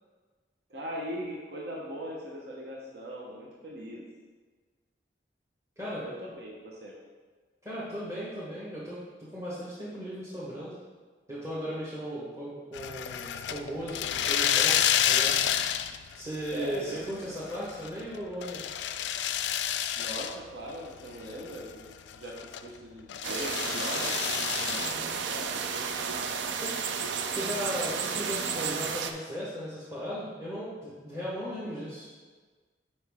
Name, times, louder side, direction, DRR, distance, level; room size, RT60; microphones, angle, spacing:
voice 1, 0.7-4.0 6.0-6.9 16.5-17.1 20.0-24.1 24.6-25.6, equal, 65° right, -3 dB, 0.9 m, -40 dB
voice 2, 7.6-9.0 9.3-10.7 11.3-14.8 15.1-15.4 16.1-18.6 24.8-25.1 26.6-26.8 27.3-32.1, equal, 15° right, -10 dB, 1.1 m, -36 dB
sound 1, 12.7-16.2 16.5-17.1 17.5-20.3 20.7-20.8 21.2-22.7 23.1-24.9, left 10 dB, 80° left, 0.3 m, -29 dB
sound 2, 23.2-29.1, right 6 dB, 85° right, 0.5 m, -32 dB
6.9 x 5.3 x 3.5 m, 1.4 s
head